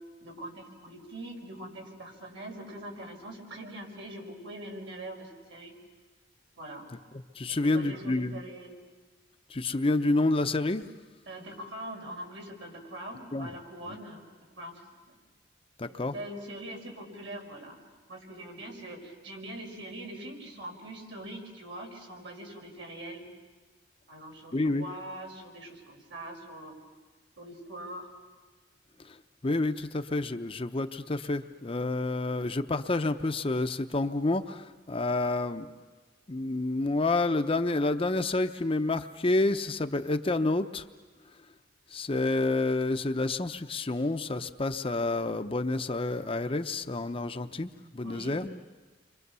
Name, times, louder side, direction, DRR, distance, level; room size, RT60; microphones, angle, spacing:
voice 1, 0.2-5.7 6.6-6.8 7.5-8.8 11.3-14.3 14.6-15.2 16.0-17.8 18.1-23.3 24.1-26.7 27.4-28.1 48.0-48.3, right 1 dB, 85° right, 0 dB, 5.8 m, -43 dB
voice 2, 7.4-8.4 9.5-10.8 13.3-13.5 13.9-14.0 15.8-16.1 24.5-24.8 29.4-35.7 36.3-40.8 41.9-48.6, left 2 dB, 30° left, 8 dB, 0.7 m, -29 dB
30.0 x 24.5 x 6.9 m, 1.3 s
head